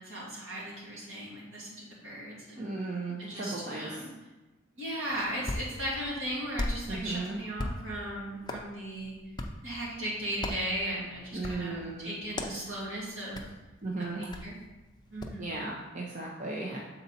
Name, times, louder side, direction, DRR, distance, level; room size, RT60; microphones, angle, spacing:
voice 1, 0.0-2.7 3.2-4.1 4.7-9.2 9.6-13.4 14.1-14.6 15.1-15.5, right 1 dB, 75° right, -6 dB, 2.3 m, -37 dB
voice 2, 2.6-4.1 6.9-7.4 11.3-12.1 13.8-14.2 15.4-16.8, right 2 dB, 35° right, -3 dB, 0.7 m, -36 dB
Hands, 5.1-15.4, left 1 dB, 20° left, 0.5 m, -41 dB
7.0 x 4.0 x 4.1 m, 1.1 s
head